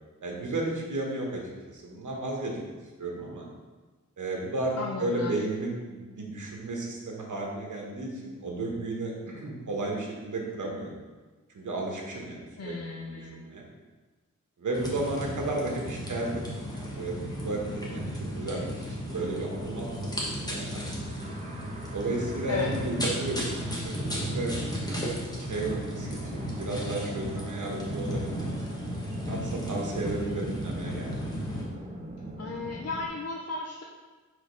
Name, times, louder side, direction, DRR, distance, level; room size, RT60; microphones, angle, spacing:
voice 1, 0.2-2.6 3.0-3.5 4.2-11.0 11.5-13.6 14.6-16.3 16.7-18.6 18.9-21.0 21.9-24.5 24.8-25.1 25.4-28.8 29.3-31.2, right 2 dB, 80° right, -1 dB, 1.2 m, -33 dB
voice 2, 4.8-5.4 12.6-13.4 22.5-22.7 32.4-33.8, left 4 dB, 55° left, -1 dB, 0.6 m, -34 dB
sound 1, 14.7-31.6, equal, 15° left, 1.2 m, -35 dB
sound 2, 19.1-33.1, right 2 dB, 25° right, 0.7 m, -41 dB
5.1 x 3.6 x 5.1 m, 1.3 s
wide cardioid pair, 115°, 30 cm